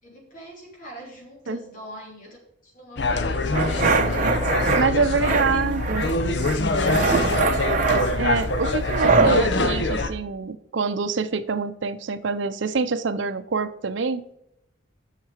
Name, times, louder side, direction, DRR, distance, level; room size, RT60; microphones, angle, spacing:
voice 1, 0.0-2.4 2.6-5.7 6.8-7.8, left 1 dB, 40° left, -3 dB, 3.2 m, -41 dB
sound 1, 3.0-10.1, left 2 dB, 60° left, 0.7 m, -24 dB
sound 2, 3.5-4.8 5.2-6.1 6.4-9.4, right 4 dB, 40° right, 0.8 m, -23 dB
sound 3, 4.6-8.4, left 1 dB, 20° right, 2.3 m, -45 dB
voice 2, 4.7-6.0 8.2-14.2, right 4 dB, 70° right, 11 dB, 0.5 m, -25 dB
7.5 x 6.6 x 4.9 m, 0.80 s
head